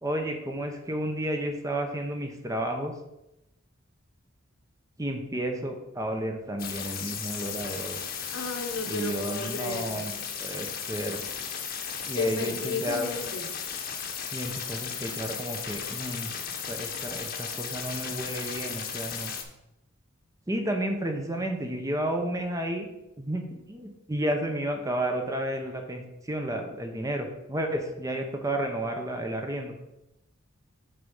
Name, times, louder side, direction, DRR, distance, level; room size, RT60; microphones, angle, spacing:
voice 1, 0.0-2.9 5.0-8.0 8.9-10.1 10.4-11.3 12.1-13.1 14.3-16.3 16.7-19.3 20.5-22.9 23.2-29.8, right 1 dB, 15° right, 4 dB, 0.8 m, -32 dB
sound 1, 6.6-19.4, left 7 dB, 45° left, 1.0 m, -35 dB
voice 2, 8.3-10.0 12.2-13.5, left 3 dB, 70° left, 3 dB, 1.2 m, -33 dB
6.7 x 4.7 x 5.4 m, 0.89 s
head